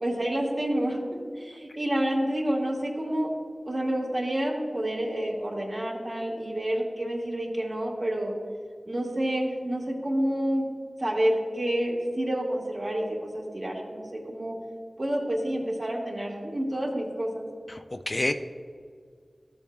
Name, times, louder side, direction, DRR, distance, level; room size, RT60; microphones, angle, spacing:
voice 1, 0.0-1.0 1.4-3.3 3.7-8.3 8.9-10.7 11.0-14.6 15.0-17.5, right 1 dB, 45° right, -2 dB, 1.8 m, -28 dB
voice 2, 17.7-18.3, left 1 dB, 40° left, 7 dB, 0.4 m, -28 dB
14.0 x 7.0 x 2.4 m, 2.1 s
wide cardioid pair, 55°, 0 cm